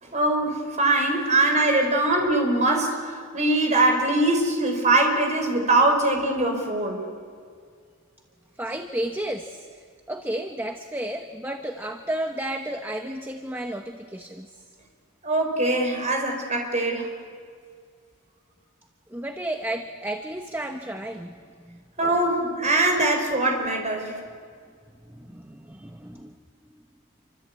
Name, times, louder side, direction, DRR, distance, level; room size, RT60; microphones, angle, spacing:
voice 1, 0.0-7.0 15.2-17.1 22.0-24.2, right 2 dB, 30° right, 2 dB, 5.1 m, -22 dB
voice 2, 8.6-14.6 19.1-21.8 25.1-26.3, right 1 dB, 10° right, 5 dB, 1.0 m, -32 dB
28.0 x 25.0 x 8.5 m, 2.1 s
head